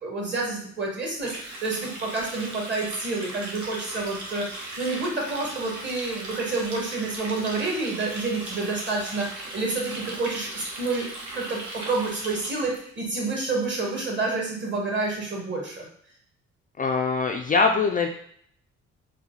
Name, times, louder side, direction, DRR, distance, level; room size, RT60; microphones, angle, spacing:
voice 1, 0.0-4.5 4.8-11.1 11.3-15.8, right 3 dB, 40° right, -2 dB, 1.7 m, -29 dB
Water tap faucet, 1.2-12.8, right 2 dB, 65° right, 1.3 m, -38 dB
voice 2, 16.8-18.1, left 4 dB, 30° left, 3 dB, 0.4 m, -22 dB
4.3 x 2.2 x 3.9 m, 0.65 s
cardioid pair, 90°, 30 cm